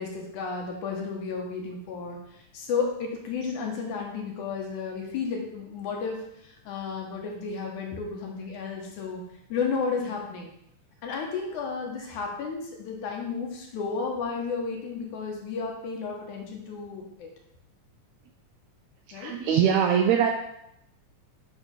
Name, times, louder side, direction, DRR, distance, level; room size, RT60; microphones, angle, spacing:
voice 1, 0.0-9.2 9.5-10.5 11.0-17.3 19.1-19.3, left 5 dB, 75° left, 0 dB, 2.4 m, -33 dB
voice 2, 19.1-20.3, right 8 dB, 85° right, 3 dB, 1.6 m, -22 dB
8.3 x 3.2 x 5.1 m, 0.78 s
omnidirectional pair, 3.7 m